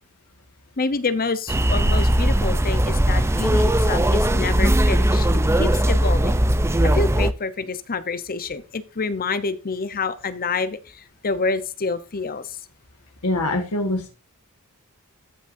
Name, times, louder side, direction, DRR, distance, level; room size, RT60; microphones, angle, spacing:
voice 1, 0.8-5.3 5.6-6.3 6.8-12.6, left 4 dB, 40° left, 13 dB, 0.8 m, -27 dB
sound 1, 1.5-7.3, right 1 dB, 10° right, 0.5 m, -19 dB
voice 2, 13.2-14.1, left 2 dB, 90° left, 2 dB, 1.5 m, -23 dB
13.5 x 6.1 x 2.6 m, 0.33 s
head